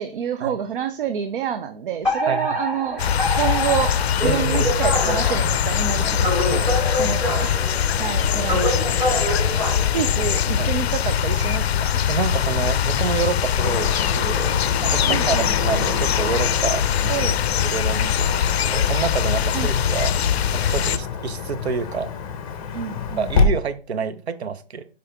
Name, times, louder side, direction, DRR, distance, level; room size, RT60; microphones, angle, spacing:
voice 1, 0.0-3.1 3.3-9.2 9.9-12.0 15.0-15.6 17.1-17.4 19.5-19.7 22.7-23.3, right 9 dB, 55° right, 0.6 m, -28 dB
Alarm, 2.0-10.6, left 1 dB, 5° right, 3.5 m, -26 dB
sound 1, 3.0-21.0, left 9 dB, 75° left, 0.5 m, -22 dB
voice 2, 4.2-4.8 6.5-6.7 7.0-7.1 7.9-8.0 9.5-9.9 10.6-10.7 12.1-16.8 17.2-17.4 17.6-20.2 20.5-22.1 23.2-24.9, right 6 dB, 85° right, 0.8 m, -28 dB
Car passing by / Traffic noise roadway noise, 13.6-23.5, left 5 dB, 35° left, 1.0 m, -28 dB
5.7 x 5.0 x 3.5 m
hypercardioid pair, 150°, 31 cm